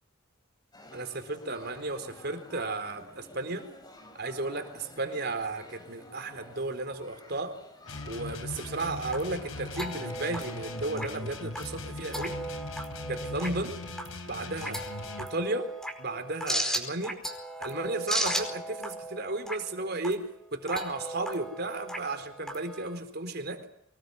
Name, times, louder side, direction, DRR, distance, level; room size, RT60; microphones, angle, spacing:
sound 1, 0.7-12.1, left 2 dB, 20° left, 4.7 m, -51 dB
voice 1, 0.9-3.7 4.1-7.6 8.1-12.4 13.1-13.8 14.3-14.8 15.2-15.7 16.0-17.2 17.6-23.6, right 2 dB, 50° right, 8 dB, 4.1 m, -34 dB
sound 2, 7.8-15.3, left 2 dB, 75° left, 4.0 m, -40 dB
sound 3, 8.7-23.0, right 1 dB, ahead, 4.8 m, -37 dB
25.5 x 20.5 x 9.6 m, 0.70 s
head